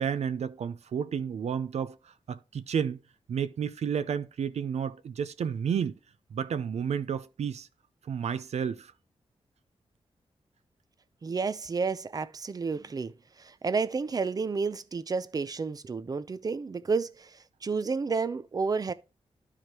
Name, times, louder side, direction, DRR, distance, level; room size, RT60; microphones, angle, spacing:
voice 1, 0.0-3.0 3.3-5.9 6.3-7.7 8.1-8.9, right 7 dB, 80° right, 0.6 m, -31 dB
voice 2, 11.2-13.1 13.4-18.9, right 4 dB, 35° right, 0.5 m, -31 dB
12.0 x 5.0 x 2.9 m
wide cardioid pair, 145°, 11 cm